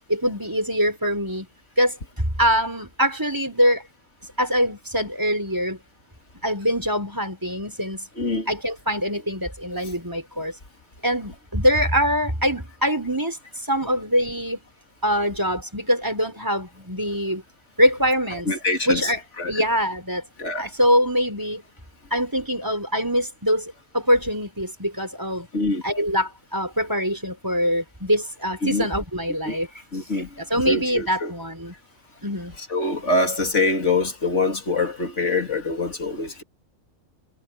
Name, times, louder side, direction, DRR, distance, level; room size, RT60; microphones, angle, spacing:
voice 1, 0.1-1.5 1.8-3.8 4.4-5.8 6.4-8.1 8.5-10.5 11.0-13.4 13.6-14.6 15.0-17.4 17.8-18.5 18.8-20.2 20.6-21.6 22.1-25.5 25.8-29.7 30.1-31.7 32.2-32.5, equal, 15° right, 4.9 m, -23 dB
voice 2, 8.2-8.5 18.5-19.1 19.4-19.5 20.4-20.6 25.5-25.8 28.6-28.9 29.5-29.6 29.9-30.3 30.7-31.3 32.7-36.4, left 3 dB, 60° left, 3.2 m, -24 dB
omnidirectional pair, 1.4 m